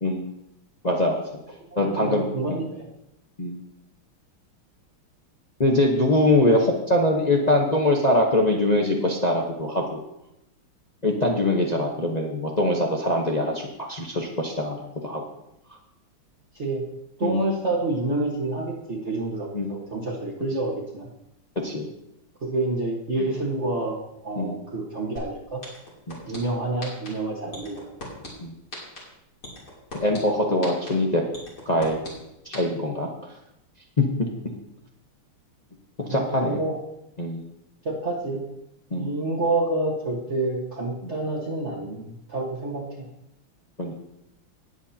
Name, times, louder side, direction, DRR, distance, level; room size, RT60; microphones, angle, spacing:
voice 1, 0.8-1.2 1.8-2.6 3.4-3.6 5.6-10.0 11.0-15.2 17.2-17.4 19.5-19.7 21.6-21.9 24.4-24.6 26.1-26.2 28.4-28.5 29.9-31.2 31.6-32.0 32.4-33.1 36.1-36.6 37.2-37.4 38.9-39.1 41.0-41.1 43.8-43.9, left 1 dB, 35° left, 0 dB, 0.7 m, -23 dB
voice 2, 1.7-2.8 16.5-16.8 17.2-21.1 22.4-25.6 26.3-27.8 36.1-36.8 37.8-38.4 39.0-43.0, right 2 dB, 35° right, -5 dB, 1.6 m, -28 dB
sound 1, 25.2-25.3 25.6-26.4 26.8-27.1 27.5-28.3 28.7-29.0 29.4-30.2 30.6-30.9 31.3-32.1 32.5-32.6, left 2 dB, 50° left, 3.6 m, -37 dB
19.5 x 8.1 x 2.9 m, 0.84 s
omnidirectional pair, 2.4 m